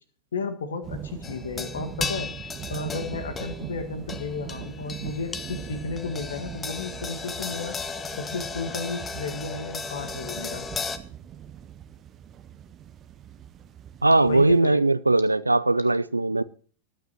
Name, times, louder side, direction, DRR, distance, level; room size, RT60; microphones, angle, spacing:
voice 1, 0.3-2.3 2.7-7.8 8.2-10.7 14.2-14.9, left 4 dB, 65° left, 1.7 m, -33 dB
sound 1, 0.8-14.6, right 10 dB, 30° right, 0.8 m, -41 dB
sound 2, 1.2-11.0, left 5 dB, 20° left, 1.0 m, -36 dB
voice 2, 14.0-16.4, right 2 dB, 85° right, 0.5 m, -20 dB
19.5 x 9.2 x 3.0 m
figure-of-eight pair, 90°, 0 cm